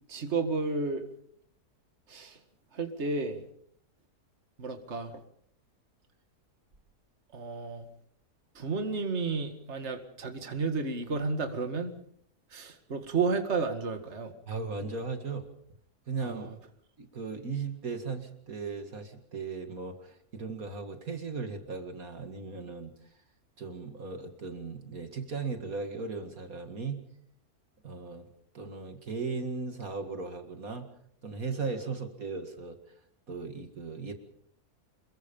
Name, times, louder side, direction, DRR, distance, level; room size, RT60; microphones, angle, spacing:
voice 1, 0.1-1.0 2.1-2.4 2.7-3.4 4.6-5.1 7.3-7.8 8.6-11.9 12.5-14.3 16.2-16.6, right 4 dB, 45° right, 6 dB, 2.3 m, -32 dB
voice 2, 14.5-15.5 16.1-16.5 17.0-22.9 23.6-27.0 27.8-28.3 28.5-30.9 31.2-32.8 33.3-34.1, right 4 dB, 60° right, 6 dB, 2.4 m, -37 dB
27.5 x 22.0 x 5.4 m, 0.64 s
omnidirectional pair, 1.7 m